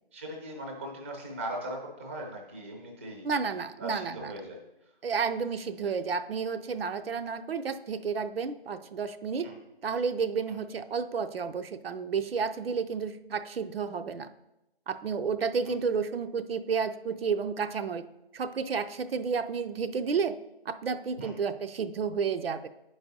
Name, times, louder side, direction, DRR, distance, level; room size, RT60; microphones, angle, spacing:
voice 1, 0.1-3.2 3.8-4.6 9.4-9.5 15.6-15.7 21.2-21.3, right 1 dB, 15° right, 1 dB, 0.6 m, -39 dB
voice 2, 3.2-4.3 5.0-9.5 9.8-14.3 14.9-18.0 18.3-20.4 20.7-22.7, right 5 dB, 70° right, 9 dB, 0.5 m, -31 dB
10.0 x 4.7 x 2.7 m, 0.91 s
hypercardioid pair, 160°, 31 cm